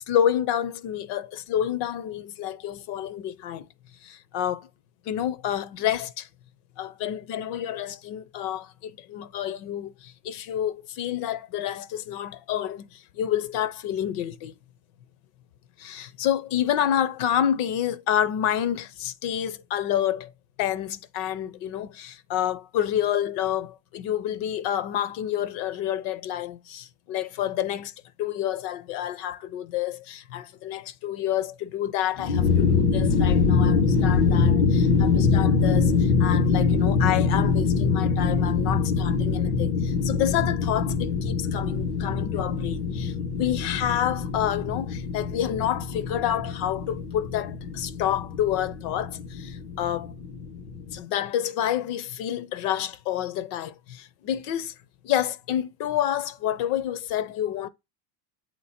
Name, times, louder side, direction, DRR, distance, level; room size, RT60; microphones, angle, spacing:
voice 1, 0.1-3.7 4.0-4.7 5.1-6.3 6.8-14.5 15.8-20.3 20.6-27.9 28.2-50.1 50.9-54.7 55.0-57.7, left 10 dB, 55° left, 0.7 m, -29 dB
sound 1, 32.2-51.0, left 5 dB, 85° left, 1.5 m, -24 dB
8.1 x 3.0 x 4.2 m
supercardioid pair, 135°, 47 cm